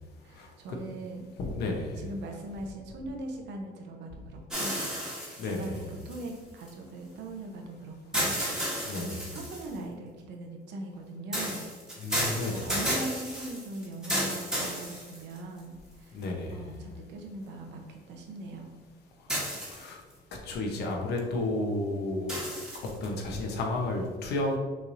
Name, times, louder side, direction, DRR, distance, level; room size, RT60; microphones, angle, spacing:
voice 1, 0.2-1.2 2.0-4.9 5.1-11.7 12.1-12.2 12.5-16.2 16.5-18.7, right 1 dB, 85° right, 2 dB, 0.8 m, -41 dB
voice 2, 1.4-2.0 5.4-5.8 8.9-9.2 12.0-12.7 16.1-16.6 19.7-20.0 20.5-22.4 23.0-24.6, left 2 dB, 70° left, 1 dB, 0.9 m, -32 dB
sound 1, 4.5-6.7 8.1-9.8 11.3-15.6 16.2-16.3 19.3-20.1 22.3-23.1, equal, 5° right, 1.2 m, -33 dB
6.1 x 3.2 x 2.6 m, 1.4 s
cardioid pair, 150°, 18 cm